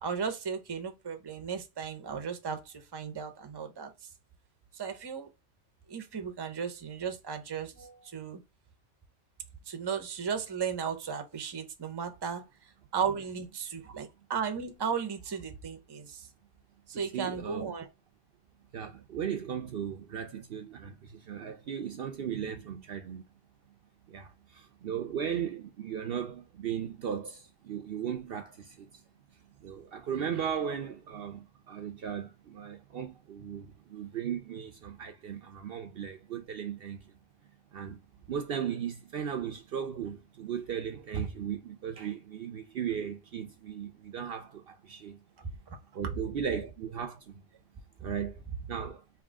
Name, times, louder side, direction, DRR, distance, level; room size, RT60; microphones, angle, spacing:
voice 1, 0.0-3.9 4.8-5.3 5.9-8.4 9.7-12.4 12.9-16.3 16.9-17.9 46.0-46.1, right 6 dB, 25° right, 0.6 m, -35 dB
voice 2, 16.9-17.6 18.7-23.2 24.1-29.0 29.6-37.1 37.7-38.0 38.3-45.2 45.9-47.4 48.0-48.4 48.7-49.0, right 8 dB, 60° right, 0.7 m, -37 dB
3.8 x 2.8 x 3.5 m
omnidirectional pair, 1.2 m